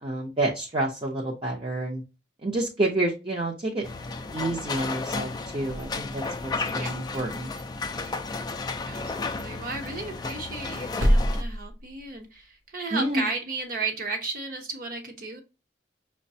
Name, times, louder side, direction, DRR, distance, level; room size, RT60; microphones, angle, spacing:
voice 1, 0.0-2.0 2.4-3.9 4.3-7.5 12.9-13.3, right 2 dB, 30° right, -2 dB, 0.6 m, -29 dB
sound 1, 3.8-11.4, left 3 dB, 20° left, 0.3 m, -33 dB
sound 2, 5.5-6.7 7.1-8.2 8.5-8.6 8.9-9.1 9.4-9.5 9.8-12.4, equal, 80° right, 0.7 m, -29 dB
voice 2, 8.9-15.4, right 3 dB, 50° right, 3 dB, 0.9 m, -34 dB
5.7 x 2.2 x 2.7 m, 0.29 s
head